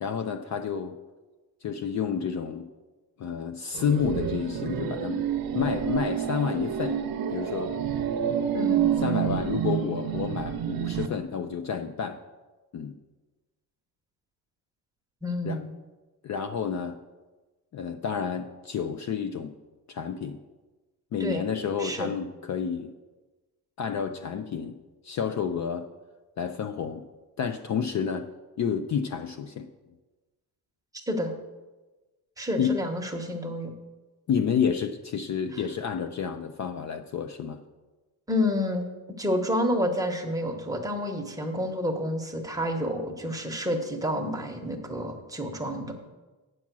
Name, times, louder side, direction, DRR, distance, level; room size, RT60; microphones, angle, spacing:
voice 1, 0.0-1.0 1.6-2.7 3.2-5.3 5.5-7.0 7.3-7.8 9.0-12.2 12.7-13.0 15.4-15.6 16.2-17.0 17.7-19.5 19.9-20.4 21.1-22.9 23.8-24.8 25.0-25.9 26.4-27.0 27.4-28.3 28.6-29.7 32.6-32.8 34.3-37.6, left 7 dB, 45° left, 8 dB, 0.5 m, -30 dB
sound 1, 3.7-11.1, right 9 dB, 55° right, 0.8 m, -28 dB
voice 2, 8.5-8.9 15.2-15.7 21.2-21.4 21.8-22.1 30.9-31.3 32.4-33.7 35.5-35.6 38.3-38.9 39.2-45.9, left 1 dB, 10° right, 2 dB, 1.0 m, -29 dB
9.4 x 7.3 x 6.1 m, 1.2 s
cardioid pair, 160°, 40 cm